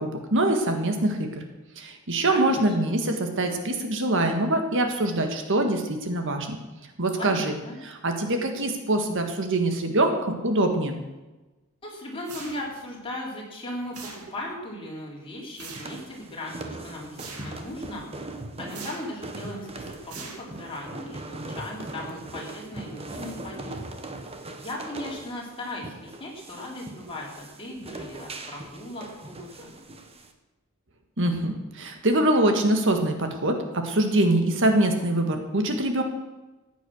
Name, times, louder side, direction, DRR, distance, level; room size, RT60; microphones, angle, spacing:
voice 1, 0.0-1.4 1.8-6.6 7.0-7.5 7.8-11.0 31.2-36.0, right 1 dB, 60° right, 5 dB, 1.7 m, -24 dB
voice 2, 2.3-2.7 7.1-7.8 11.8-23.8 24.6-29.7, left 1 dB, 25° left, -3 dB, 4.0 m, -37 dB
sound 1, 12.2-12.9 13.9-14.6 15.6-16.1 17.2-17.7 18.7-19.2 20.1-20.8, right 4 dB, 85° right, 2.5 m, -42 dB
sound 2, 15.6-30.3, right 2 dB, 25° right, 1.3 m, -40 dB
14.5 x 9.3 x 6.5 m, 1.1 s
head